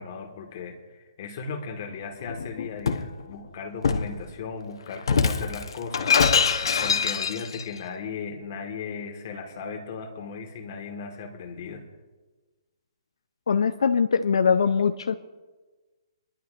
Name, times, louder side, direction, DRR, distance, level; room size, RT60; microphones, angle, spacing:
voice 1, 0.0-6.1 6.8-11.8, left 5 dB, 35° left, 4 dB, 1.6 m, -36 dB
Shatter, 2.2-3.1 3.8-4.2 5.0-7.6, left 6 dB, 65° left, 0.9 m, -24 dB
voice 2, 13.5-15.1, left 6 dB, 80° left, 9 dB, 0.6 m, -22 dB
25.0 x 11.5 x 2.5 m, 1.3 s
hypercardioid pair, 170°, 3 cm